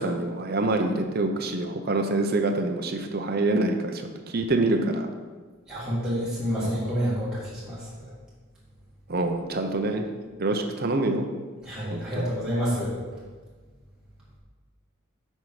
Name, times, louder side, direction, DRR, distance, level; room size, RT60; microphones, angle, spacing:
voice 1, 0.0-5.1 9.1-10.1 10.4-11.3 11.9-12.3, right 2 dB, 45° right, 4 dB, 0.7 m, -26 dB
voice 2, 5.7-8.1 11.6-12.9, equal, 5° right, -10 dB, 2.3 m, -28 dB
7.4 x 5.5 x 4.9 m, 1.4 s
head